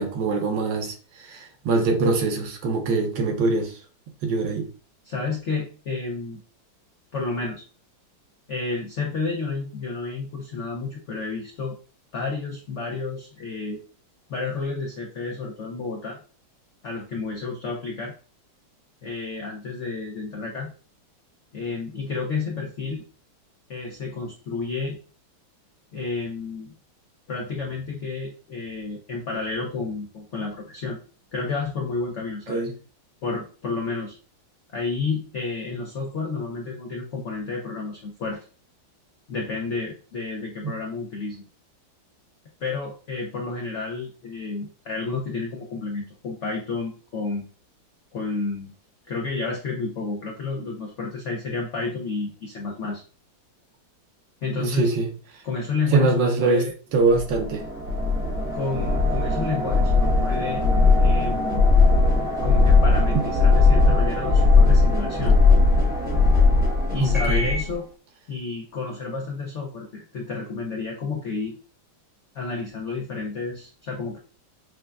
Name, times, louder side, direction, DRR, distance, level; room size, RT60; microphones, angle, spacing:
voice 1, 0.0-3.7 4.2-4.7 32.5-32.7 40.6-40.7 54.6-55.1 55.9-56.6 56.9-57.6 63.1-63.2 67.0-67.4, right 3 dB, 75° right, 1.4 m, -23 dB
voice 2, 5.0-6.4 7.1-7.6 8.5-11.8 12.1-13.8 14.3-16.2 16.8-18.1 19.0-20.7 21.5-23.0 23.7-25.0 25.9-26.7 27.3-31.0 31.3-32.6 33.2-34.2 34.7-38.4 39.3-41.4 42.6-47.5 48.1-48.7 49.1-53.0 54.4-54.9 55.4-56.7 58.5-60.6 61.0-61.7 62.4-65.4 66.9-67.9 68.3-71.6 72.3-74.2, left 4 dB, 70° left, 0.6 m, -30 dB
sound 1, 57.1-67.7, left 3 dB, 15° right, 0.4 m, -19 dB
6.3 x 2.2 x 2.3 m
omnidirectional pair, 2.1 m